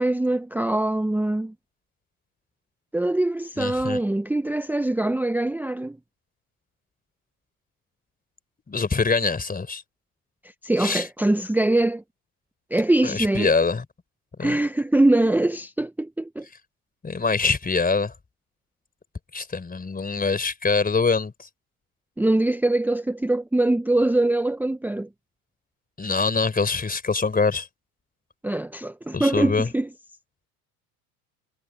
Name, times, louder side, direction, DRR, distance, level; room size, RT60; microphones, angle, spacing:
voice 1, 0.0-1.5 2.9-6.0 10.6-12.0 12.7-13.5 14.4-16.5 22.2-25.1 28.4-29.9, right 2 dB, 5° right, 0.9 m, -23 dB
voice 2, 3.6-4.0 8.7-9.8 10.8-11.1 13.0-13.8 14.4-14.6 17.0-18.1 19.3-21.5 26.0-27.7 29.1-29.7, left 4 dB, 20° left, 4.0 m, -24 dB
hypercardioid pair, 80°, 43 cm